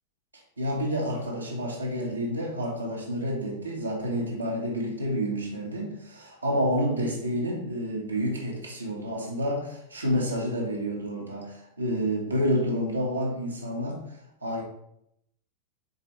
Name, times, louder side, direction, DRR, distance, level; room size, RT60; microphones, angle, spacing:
voice 1, 0.6-14.1 14.4-14.6, equal, 80° right, -2 dB, 1.4 m, -29 dB
7.0 x 4.3 x 3.1 m, 0.76 s
figure-of-eight pair, 90°, 0 cm